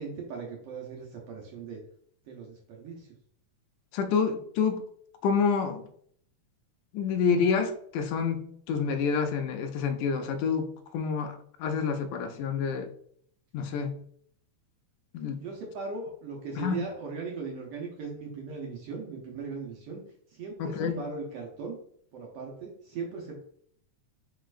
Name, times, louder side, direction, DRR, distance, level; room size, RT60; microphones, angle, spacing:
voice 1, 0.0-1.8 2.3-3.1 15.4-20.0 20.3-21.8 22.1-23.4, right 4 dB, 70° right, -1 dB, 1.5 m, -38 dB
voice 2, 3.9-4.8 5.2-5.8 6.9-12.9 13.5-14.0 15.1-15.4 16.6-16.8 20.6-21.0, left 6 dB, 85° left, 6 dB, 2.1 m, -28 dB
4.9 x 4.3 x 2.5 m, 0.62 s
omnidirectional pair, 3.4 m